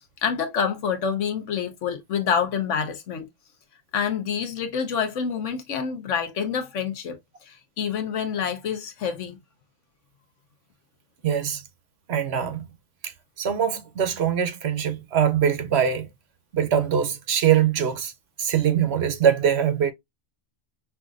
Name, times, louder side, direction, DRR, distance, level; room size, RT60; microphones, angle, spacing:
voice 1, 0.2-3.3 3.9-9.4, left 7 dB, 70° left, 1.2 m, -27 dB
voice 2, 11.2-11.6 12.1-12.6 13.0-16.1 16.5-18.1 18.4-19.9, right 8 dB, 65° right, 0.8 m, -23 dB
5.7 x 2.5 x 2.4 m
omnidirectional pair, 1.3 m